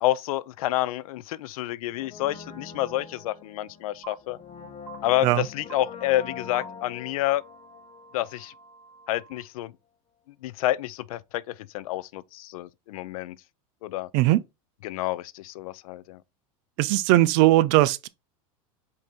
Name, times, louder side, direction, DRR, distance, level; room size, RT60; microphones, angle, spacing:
voice 1, 0.0-4.4 5.0-7.4 8.1-8.5 9.1-9.7 10.4-13.4 13.8-14.1 14.8-16.2, left 15 dB, 80° left, 0.4 m, -29 dB
Brass instrument, 1.9-8.8 9.0-9.1, left 6 dB, 30° left, 0.9 m, -44 dB
sound 1, 4.0-4.1 4.9-5.0 5.7-5.8 6.5-6.6 7.3-9.4, right 7 dB, 10° right, 1.5 m, -47 dB
voice 2, 16.8-18.1, right 16 dB, 55° right, 0.5 m, -19 dB
5.3 x 2.7 x 3.5 m
supercardioid pair, 135°, 18 cm